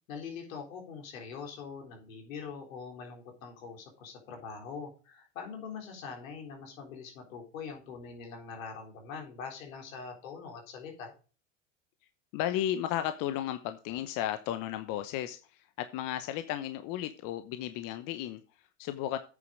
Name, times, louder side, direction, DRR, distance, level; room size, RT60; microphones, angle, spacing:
voice 1, 0.1-11.1, left 5 dB, 85° left, 2 dB, 3.9 m, -43 dB
voice 2, 12.3-19.2, left 12 dB, 55° left, 10 dB, 0.9 m, -34 dB
8.8 x 6.9 x 5.1 m, 0.36 s
supercardioid pair, 105°, 39 cm